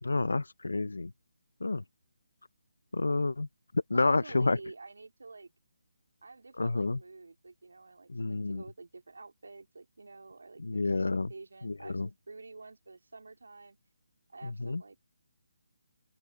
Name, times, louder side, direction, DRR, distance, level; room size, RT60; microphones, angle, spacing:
voice 1, 0.0-1.1 1.6-1.8 2.9-3.5 3.9-4.6 6.6-7.0 8.1-8.6 10.6-11.3 11.6-12.1 14.4-14.8, left 3 dB, 85° left, 0.9 m, -29 dB
voice 2, 3.9-5.5 6.2-13.8 14.3-15.1, right 3 dB, 80° right, 3.9 m, -49 dB
open air
figure-of-eight pair, 160°, 0 cm